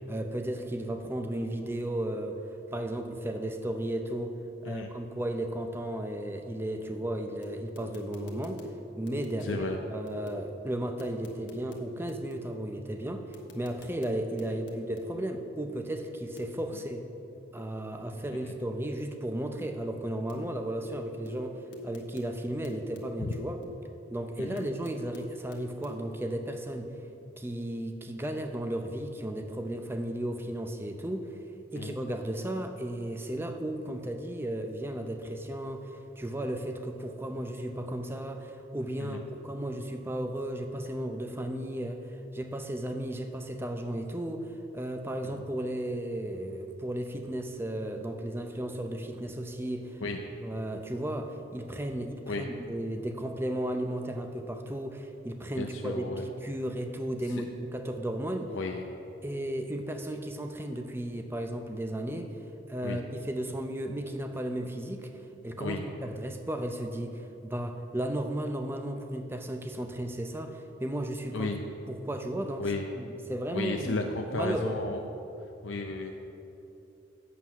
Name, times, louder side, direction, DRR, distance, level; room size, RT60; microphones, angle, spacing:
voice 1, 0.1-2.4 2.7-8.6 9.0-9.6 9.9-17.0 17.5-23.6 24.1-26.9 27.4-31.4 31.7-50.0 50.4-58.5 59.2-62.3 62.7-71.5 71.9-72.7 72.9-74.0 74.3-74.8, right 1 dB, 10° right, 5 dB, 0.5 m, -34 dB
sound 1, 7.0-10.6 11.0-12.8 13.3-15.3 16.4-16.7 20.3-20.6 20.8-23.9 24.6-26.1, left 1 dB, 60° left, 1.2 m, -45 dB
voice 2, 9.4-9.8 14.5-14.6 18.4-18.5 23.2-23.3 24.4-24.6 31.8-31.9 39.0-39.2 45.3-45.4 50.0-50.2 52.3-52.5 55.6-56.3 57.4-57.5 58.5-58.9 62.8-63.0 65.6-65.9 71.3-71.6 72.6-72.8 73.5-75.0 75.6-76.1, left 3 dB, 80° left, 2 dB, 0.6 m, -34 dB
8.4 x 7.5 x 5.8 m, 2.9 s
head